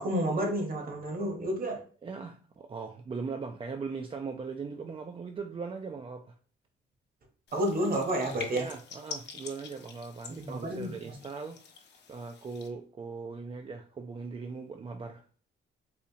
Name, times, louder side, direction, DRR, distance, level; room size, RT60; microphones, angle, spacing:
voice 1, 0.0-1.8 7.5-8.7 10.3-11.2, right 1 dB, 45° right, 3 dB, 1.1 m, -30 dB
voice 2, 2.0-6.3 8.5-11.6 12.1-15.2, right 4 dB, 25° right, 4 dB, 0.4 m, -39 dB
sound 1, 7.5-12.7, left 5 dB, 60° left, 0.7 m, -46 dB
4.1 x 2.4 x 2.8 m, 0.42 s
cardioid pair, 90°, 20 cm